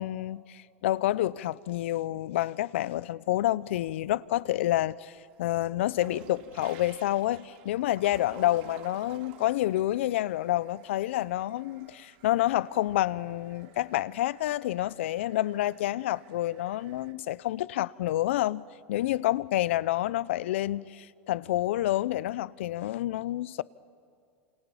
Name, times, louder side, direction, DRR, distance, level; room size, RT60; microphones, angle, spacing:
voice 1, 0.0-18.6 18.9-23.6, left 14 dB, 75° left, 0.7 m, -28 dB
sound 1, 3.4-4.4 4.8-17.1, right 10 dB, 60° right, 1.9 m, -53 dB
28.0 x 27.5 x 7.2 m
hypercardioid pair, 105°, 7 cm